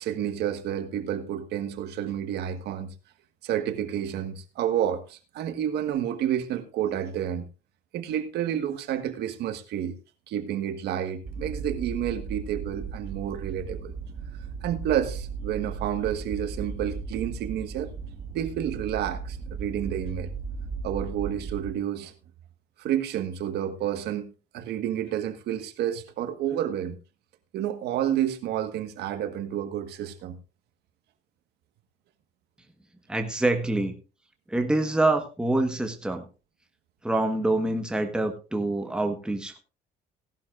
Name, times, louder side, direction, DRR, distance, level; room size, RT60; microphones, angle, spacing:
voice 1, 0.0-2.9 3.4-7.5 7.9-9.9 10.3-13.9 14.6-17.9 18.3-20.3 20.8-22.1 22.8-24.3 24.5-27.0 27.5-30.4, right 10 dB, 75° right, 8 dB, 1.6 m, -30 dB
sound 1, 11.2-21.7, right 5 dB, 45° right, 2.0 m, -36 dB
voice 2, 33.1-33.9 34.5-36.3 37.0-39.6, right 2 dB, 5° right, 4 dB, 1.5 m, -26 dB
17.0 x 11.5 x 2.6 m, 0.31 s
cardioid pair, 110°, 17 cm